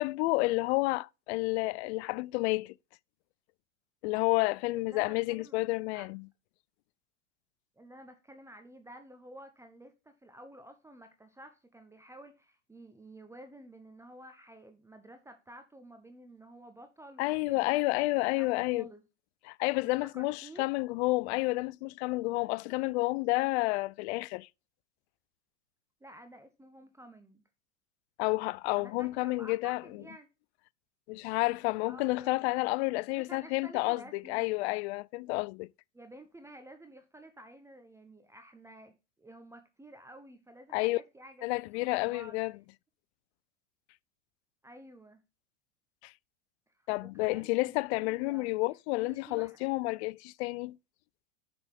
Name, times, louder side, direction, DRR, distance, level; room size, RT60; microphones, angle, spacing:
voice 1, 0.0-2.7 4.0-6.2 17.2-18.9 19.5-24.5 28.2-29.8 31.1-35.7 40.7-41.0 41.4-42.5 46.0-46.1 46.9-50.8, left 23 dB, 60° left, 0.5 m, -30 dB
voice 2, 4.7-5.6 5.9-6.1 7.8-17.7 18.1-19.0 19.8-20.7 26.0-27.4 28.7-30.3 31.8-32.7 33.1-34.6 35.9-42.4 44.6-45.2 46.7-48.6 49.0-49.6, right 1 dB, 10° right, 0.9 m, -52 dB
6.3 x 6.0 x 5.2 m
hypercardioid pair, 100°, 37 cm